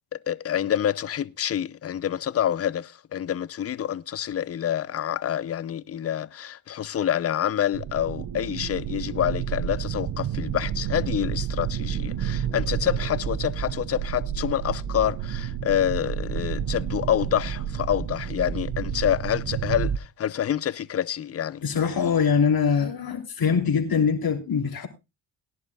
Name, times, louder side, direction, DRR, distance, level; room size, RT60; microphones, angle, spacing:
voice 1, 0.1-21.6, left 10 dB, 30° left, 0.6 m, -27 dB
sound 1, 7.7-20.0, right 9 dB, 40° right, 0.8 m, -30 dB
voice 2, 21.6-24.9, left 6 dB, 45° left, 3.1 m, -23 dB
19.0 x 11.0 x 2.3 m
hypercardioid pair, 60°, 49 cm